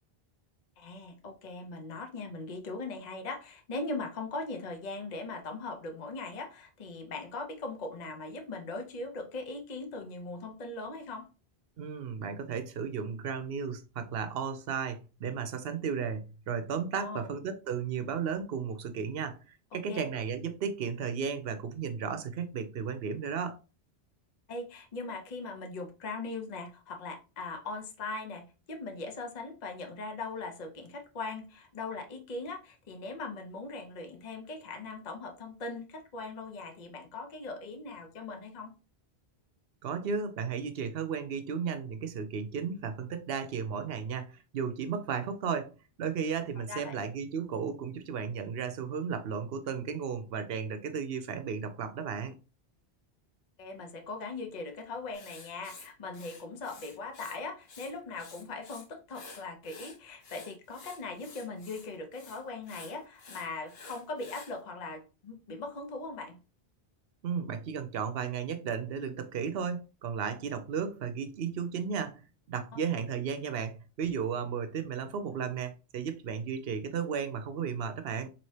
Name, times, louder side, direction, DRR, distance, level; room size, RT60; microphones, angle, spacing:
voice 1, 0.8-11.3 17.0-17.3 19.7-20.1 24.5-38.7 46.7-47.0 53.6-66.4, left 3 dB, 45° left, 0.8 m, -40 dB
voice 2, 11.8-23.6 39.8-52.4 67.2-78.3, right 6 dB, 70° right, 0.8 m, -34 dB
Writing, 55.1-57.4 57.6-58.8 59.1-64.5, left 4 dB, 70° left, 1.1 m, -50 dB
4.1 x 2.9 x 3.2 m
omnidirectional pair, 1.1 m